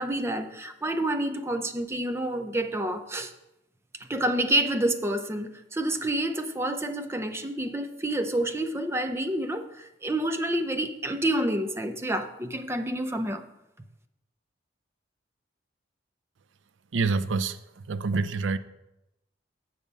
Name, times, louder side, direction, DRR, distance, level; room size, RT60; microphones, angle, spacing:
voice 1, 0.0-3.3 4.1-13.4, right 1 dB, 15° right, 7 dB, 0.5 m, -28 dB
voice 2, 16.9-17.6 17.9-18.6, right 4 dB, 80° right, 12 dB, 0.5 m, -26 dB
7.4 x 7.0 x 5.3 m, 0.89 s
head